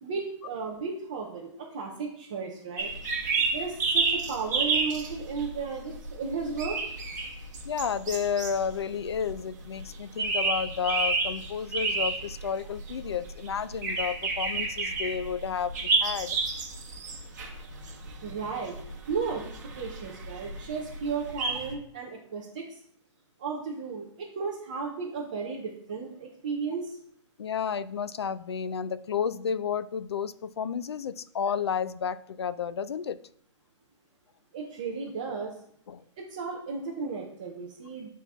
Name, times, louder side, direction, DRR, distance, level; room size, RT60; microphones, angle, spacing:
voice 1, 0.0-2.9 3.4-6.8 18.2-18.7 19.1-22.8 23.4-27.0 34.5-35.5 36.2-38.1, right 5 dB, 15° right, -3 dB, 0.4 m, -34 dB
sound 1, 2.8-21.7, right 4 dB, 35° right, 1.3 m, -31 dB
voice 2, 7.6-16.4 27.4-33.2 35.9-36.0, left 7 dB, 55° left, 15 dB, 0.4 m, -31 dB
9.1 x 4.2 x 3.5 m, 0.67 s
hypercardioid pair, 180°, 16 cm